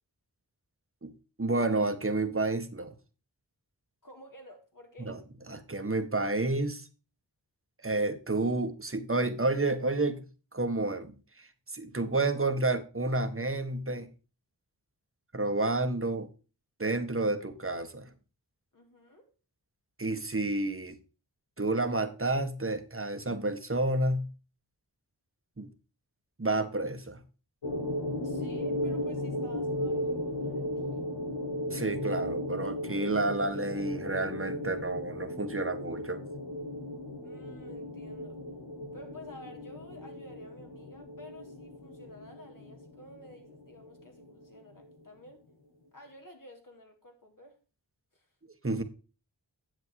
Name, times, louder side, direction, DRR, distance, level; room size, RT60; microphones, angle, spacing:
voice 1, 1.4-2.9 5.1-5.2 5.5-6.9 7.8-10.3 10.5-14.1 15.3-16.3 16.8-18.1 20.0-21.0 21.6-24.3 25.6-25.7 26.4-27.2 31.7-36.2 48.6-48.8, right 2 dB, 30° right, 1.7 m, -30 dB
voice 2, 4.0-5.2 18.7-19.3 28.2-31.0 37.2-38.4 38.9-45.4 45.9-47.6 48.1-48.3, left 1 dB, 50° left, 3.9 m, -52 dB
sound 1, 27.6-44.9, left 1 dB, 90° left, 2.2 m, -36 dB
10.0 x 7.6 x 4.8 m
cardioid pair, 40°, 43 cm